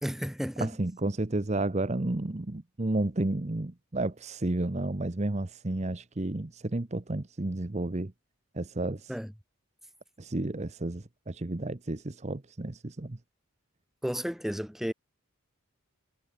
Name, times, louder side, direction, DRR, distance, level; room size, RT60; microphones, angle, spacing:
voice 1, 0.0-0.8 9.1-9.3 14.0-14.9, equal, ahead, 2.1 m, -32 dB
voice 2, 0.6-8.1 8.5-9.1 10.2-13.2, right 2 dB, 30° right, 0.8 m, -31 dB
head